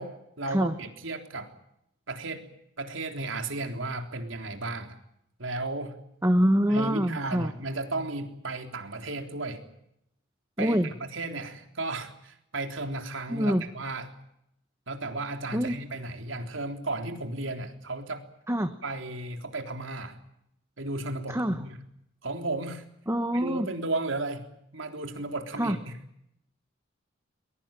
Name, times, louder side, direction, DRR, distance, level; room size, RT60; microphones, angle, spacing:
voice 1, 0.0-1.5 2.1-2.4 2.8-5.0 5.4-5.9 6.7-9.6 10.6-14.1 14.9-18.2 18.8-20.2 20.8-21.8 22.2-22.8 23.3-26.0, right 2 dB, 85° right, 5 dB, 3.7 m, -34 dB
voice 2, 6.2-7.5 10.6-10.9 13.3-13.6 15.5-15.7 18.5-18.7 21.3-21.6 23.1-23.7 25.6-25.7, equal, 15° right, 8 dB, 1.2 m, -25 dB
22.5 x 22.0 x 9.0 m, 0.78 s
head